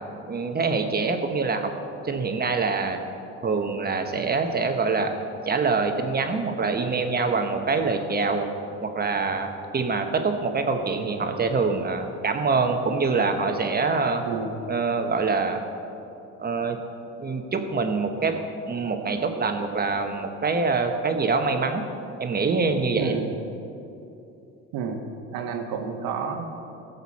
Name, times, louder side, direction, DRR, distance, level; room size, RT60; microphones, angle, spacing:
voice 1, 0.1-1.7 2.0-3.0 3.4-5.1 5.4-8.5 8.8-14.2 14.7-15.6 16.4-16.8 17.2-18.4 18.7-21.8 22.2-23.2, right 4 dB, 25° right, 5 dB, 1.2 m, -25 dB
voice 2, 22.9-23.3 24.7-25.0 25.3-26.5, right 6 dB, 70° right, 4 dB, 1.4 m, -30 dB
16.5 x 6.9 x 4.3 m, 2.8 s
supercardioid pair, 80°, 36 cm